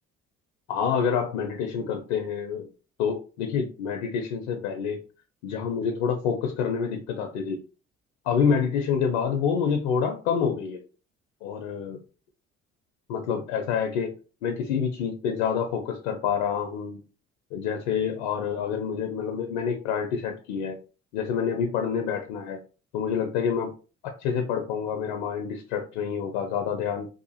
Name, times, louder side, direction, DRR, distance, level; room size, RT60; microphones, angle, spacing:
voice 1, 0.7-2.7 3.0-5.0 5.4-7.6 8.3-10.8 11.4-12.0 13.1-14.1 14.4-17.0 17.5-20.8 21.1-22.6 22.9-23.7 24.0-27.1, left 7 dB, 90° left, 5 dB, 0.5 m, -27 dB
2.7 x 2.5 x 2.8 m, 0.35 s
hypercardioid pair, 60°, 31 cm